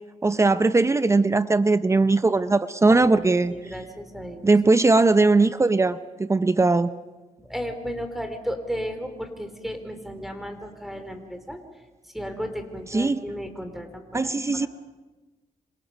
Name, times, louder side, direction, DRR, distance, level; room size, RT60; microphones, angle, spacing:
voice 1, 0.2-3.5 4.4-6.9 12.9-13.2 14.1-14.7, right 3 dB, 20° right, 13 dB, 0.7 m, -19 dB
voice 2, 2.9-4.5 7.4-11.6 12.1-14.7, equal, ahead, 7 dB, 3.1 m, -34 dB
26.5 x 26.5 x 5.3 m, 1.2 s
cardioid pair, 100°, 13 cm